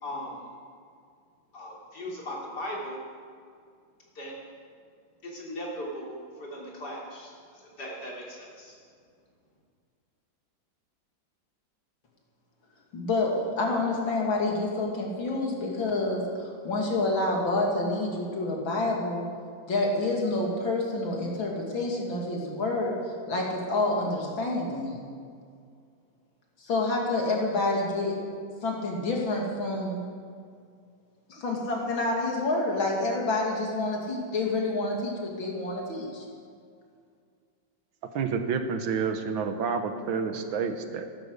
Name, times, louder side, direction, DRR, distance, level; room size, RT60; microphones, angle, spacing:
voice 1, 0.0-0.4 1.5-3.0 4.2-4.3 5.2-8.7, equal, 55° left, -3 dB, 3.8 m, -38 dB
voice 2, 12.9-19.2 19.7-22.9 23.3-25.0 26.6-28.2 28.6-30.0 31.3-36.2, left 2 dB, 75° left, -1 dB, 3.3 m, -28 dB
voice 3, 38.1-41.0, right 5 dB, 75° right, 8 dB, 1.8 m, -29 dB
15.0 x 12.0 x 6.6 m, 2.2 s
omnidirectional pair, 2.2 m